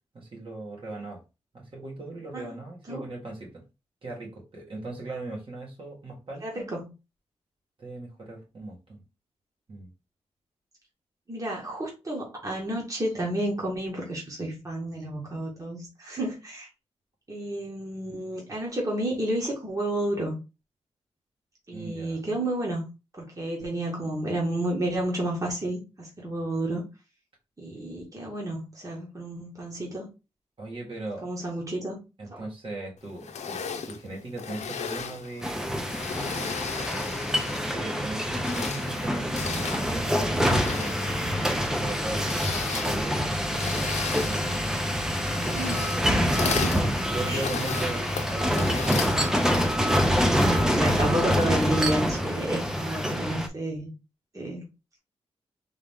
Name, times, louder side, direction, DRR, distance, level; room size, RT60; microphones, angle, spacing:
voice 1, 0.1-1.2 1.5-3.6 4.0-6.7 7.8-9.0 9.7-9.9 21.7-22.2 30.6-31.3 32.2-35.9 37.6-41.2 41.7-43.9 44.2-45.8 46.1-48.9, right 2 dB, 50° right, 1.8 m, -39 dB
voice 2, 6.4-6.9 11.3-16.7 17.3-20.4 21.7-22.8 23.1-26.8 27.6-30.1 31.2-32.0 32.3-32.4 45.5-46.7 47.3-47.4 50.3-53.9 54.3-54.7, right 1 dB, 30° right, 1.6 m, -31 dB
sound 1, 33.2-37.8 38.3-49.8, left 6 dB, 80° left, 0.6 m, -36 dB
sound 2, 35.4-53.5, equal, 5° right, 0.7 m, -26 dB
3.7 x 3.0 x 3.5 m
cardioid pair, 90°, 12 cm